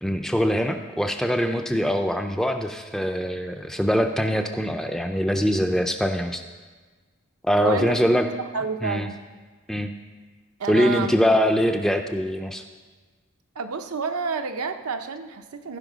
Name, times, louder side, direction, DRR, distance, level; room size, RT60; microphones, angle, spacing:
voice 1, 0.0-6.4 7.4-8.3 8.8-9.1 9.7-9.9 10.7-12.6, equal, ahead, 5 dB, 0.4 m, -23 dB
voice 2, 7.6-9.2 10.6-11.2 13.5-15.8, right 4 dB, 85° right, 7 dB, 0.7 m, -30 dB
14.5 x 5.4 x 5.1 m, 1.4 s
head